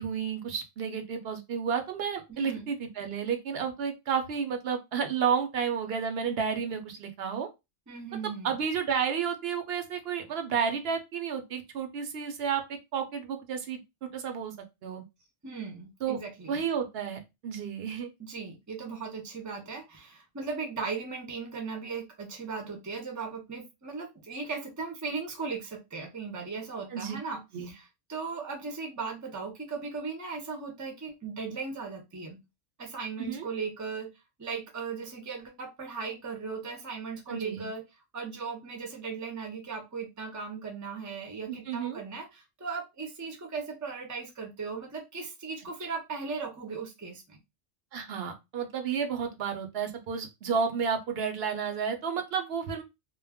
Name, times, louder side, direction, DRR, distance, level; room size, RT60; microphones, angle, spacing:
voice 1, 0.0-7.5 8.4-13.8 14.1-14.5 14.8-15.0 16.0-16.2 16.5-18.1 26.9-27.2 27.5-27.7 33.2-33.5 37.3-37.7 41.5-42.0 47.9-52.8, right 7 dB, 70° right, 6 dB, 0.8 m, -31 dB
voice 2, 2.3-2.7 7.9-8.5 15.4-16.6 18.2-32.4 32.8-34.1 34.4-37.8 38.1-47.4, right 5 dB, 20° right, 2 dB, 0.5 m, -37 dB
2.2 x 2.1 x 3.4 m, 0.22 s
omnidirectional pair, 1.1 m